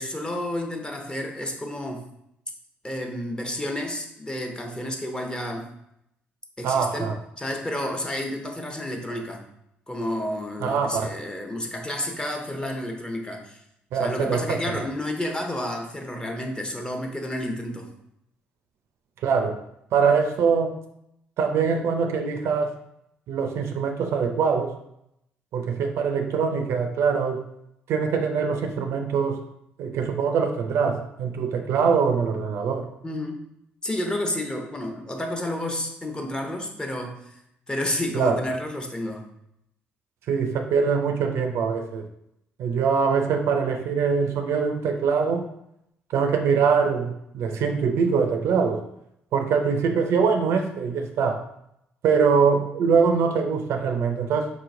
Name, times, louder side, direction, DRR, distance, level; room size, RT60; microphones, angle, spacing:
voice 1, 0.0-2.1 2.8-5.7 6.6-9.4 9.9-13.6 13.9-17.9 33.0-33.4 33.8-37.3 37.7-39.2, left 1 dB, 15° left, 2 dB, 0.8 m, -30 dB
voice 2, 6.6-7.1 10.6-11.1 13.9-14.8 19.2-19.6 19.9-20.8 21.4-22.7 23.3-24.7 25.5-27.4 27.9-29.4 29.8-32.9 38.1-38.4 40.3-42.1 42.6-45.5 46.1-48.9 49.3-51.4 52.0-54.5, right 5 dB, 65° right, 5 dB, 0.4 m, -23 dB
4.2 x 2.9 x 2.5 m, 0.78 s
hypercardioid pair, 55°, 5 cm